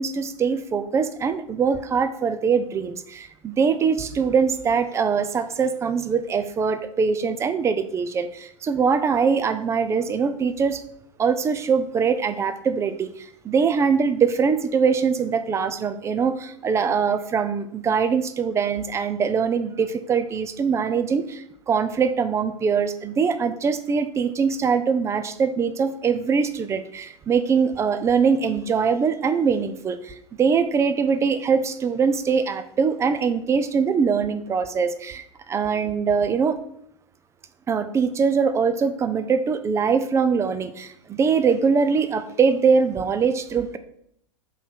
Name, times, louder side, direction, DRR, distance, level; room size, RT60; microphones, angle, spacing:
voice 1, 0.0-10.8 11.2-36.6 37.7-43.8, right 6 dB, 15° right, 10 dB, 0.6 m, -22 dB
5.6 x 4.4 x 6.2 m, 0.70 s
figure-of-eight pair, 100°, 17 cm